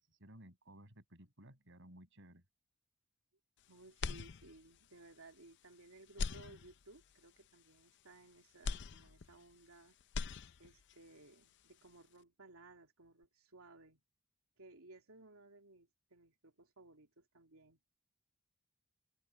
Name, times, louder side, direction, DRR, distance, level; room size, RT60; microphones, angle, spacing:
voice 1, 0.0-2.4, right 1 dB, 60° right, 7.2 m, -58 dB
voice 2, 3.7-10.0 10.6-14.0 14.6-17.8, right 2 dB, 85° right, 2.8 m, -60 dB
sound 1, 4.0-4.9 5.3-5.4 6.1-7.1 8.6-9.7 10.0-10.9, left 4 dB, 55° left, 0.5 m, -42 dB
open air
head